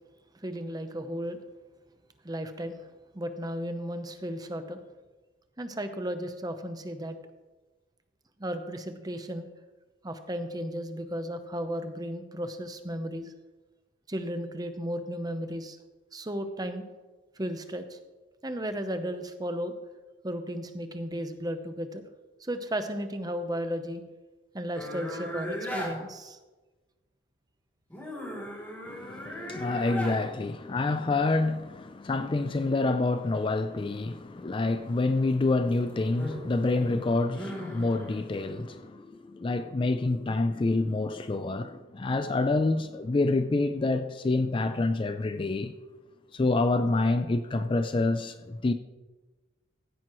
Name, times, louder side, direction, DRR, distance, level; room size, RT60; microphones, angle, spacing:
voice 1, 0.4-1.4 2.2-2.8 3.1-4.8 5.6-7.2 8.4-9.5 10.0-13.3 14.1-15.8 16.1-16.8 17.4-18.0 18.4-19.7 20.2-22.0 22.4-24.0 24.5-26.4 29.4-29.6, equal, 20° right, 0.8 m, -34 dB
sound 1, 24.7-25.9 27.9-30.2 35.5-38.2, equal, 10° left, 3.2 m, -37 dB
voice 2, 28.9-45.7 46.3-48.7, left 2 dB, 25° left, 0.3 m, -27 dB
15.5 x 9.3 x 3.1 m
head